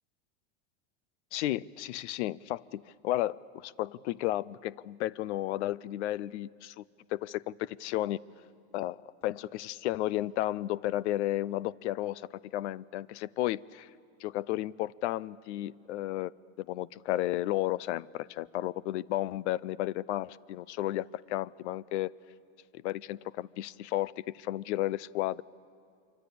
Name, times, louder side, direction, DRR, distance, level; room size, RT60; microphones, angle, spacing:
voice 1, 1.3-6.8 7.1-8.2 8.7-9.0 9.2-13.9 14.2-16.3 16.6-22.1 22.7-25.4, left 15 dB, 85° left, 22 dB, 0.6 m, -33 dB
25.5 x 24.5 x 8.6 m, 2.6 s
supercardioid pair, 160°, 34 cm